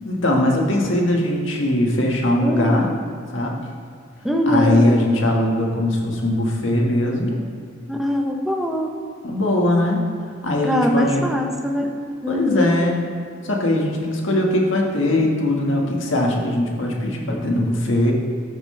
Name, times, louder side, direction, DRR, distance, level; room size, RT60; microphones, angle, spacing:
voice 1, 0.0-2.9 3.3-3.6 4.5-7.4 9.2-10.0 10.4-11.3 12.3-13.0 13.5-18.1, left 1 dB, 75° left, -1 dB, 1.7 m, -20 dB
voice 2, 2.4-2.8 4.2-4.9 7.9-8.9 10.6-11.9 12.2-12.7, equal, ahead, 1 dB, 0.8 m, -22 dB
13.5 x 7.4 x 3.3 m, 2.4 s
head